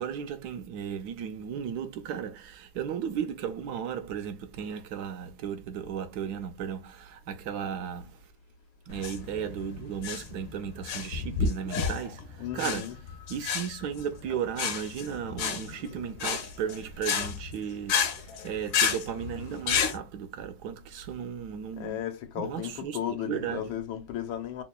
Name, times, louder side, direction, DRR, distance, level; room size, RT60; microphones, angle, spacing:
voice 1, 0.0-8.2 8.9-13.0 13.3-22.0 22.4-23.7, right 8 dB, 65° right, 1.0 m, -35 dB
sound 1, 8.9-20.0, left 6 dB, 60° left, 1.2 m, -31 dB
voice 2, 12.4-13.0 21.8-24.6, left 10 dB, 80° left, 1.5 m, -35 dB
5.8 x 2.2 x 2.3 m
omnidirectional pair, 2.2 m